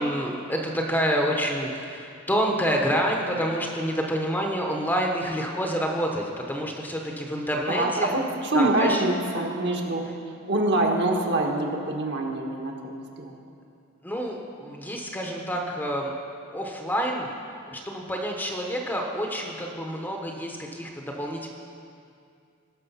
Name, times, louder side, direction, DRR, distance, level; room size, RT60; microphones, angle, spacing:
voice 1, 0.0-8.1 8.5-9.0 14.0-16.1 16.5-17.3 17.7-21.5, equal, 10° left, 1 dB, 0.9 m, -28 dB
voice 2, 7.7-10.0 10.5-13.3, right 2 dB, 55° right, 0 dB, 1.5 m, -25 dB
19.0 x 6.5 x 5.6 m, 2.5 s
head